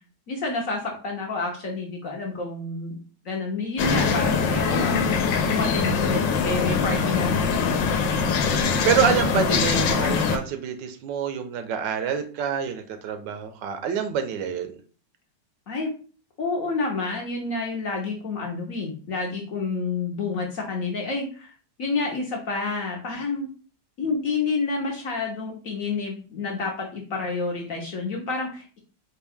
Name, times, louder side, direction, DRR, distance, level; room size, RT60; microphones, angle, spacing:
voice 1, 0.3-3.0 3.2-8.3 9.3-9.7 15.7-15.9 16.4-21.5 21.8-23.5 24.0-28.8, left 3 dB, 60° left, 0 dB, 1.0 m, -29 dB
sound 1, 3.8-10.4, left 5 dB, 85° left, 1.3 m, -23 dB
voice 2, 8.9-14.7, right 8 dB, 80° right, 8 dB, 1.3 m, -26 dB
4.4 x 2.3 x 3.4 m, 0.39 s
omnidirectional pair, 2.0 m